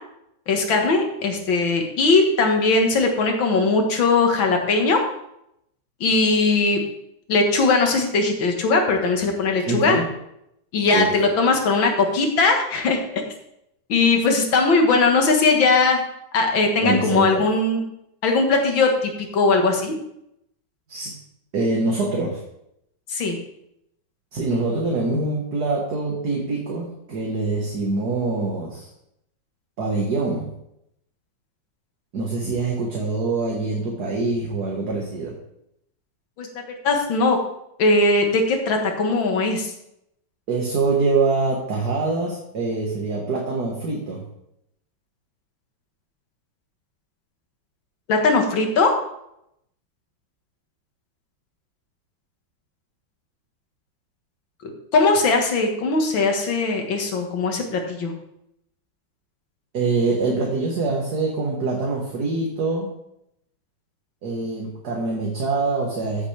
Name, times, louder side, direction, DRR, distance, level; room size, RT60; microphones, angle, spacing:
voice 1, 0.5-5.0 6.0-6.8 7.3-10.0 10.7-13.2 13.9-16.0 16.3-17.8 18.2-19.9 23.1-23.4 36.4-36.5 36.8-37.4 37.8-39.7 48.1-48.9 54.9-58.1, left 3 dB, 85° left, 3 dB, 2.3 m, -19 dB
voice 2, 9.7-10.1 10.9-11.1 16.8-17.4 20.9-21.1 21.5-22.4 24.3-28.9 29.8-30.5 32.1-35.3 40.5-44.2 59.7-62.9 64.2-66.3, right 3 dB, 55° right, -2 dB, 2.0 m, -24 dB
14.5 x 8.0 x 3.4 m, 0.78 s
omnidirectional pair, 2.1 m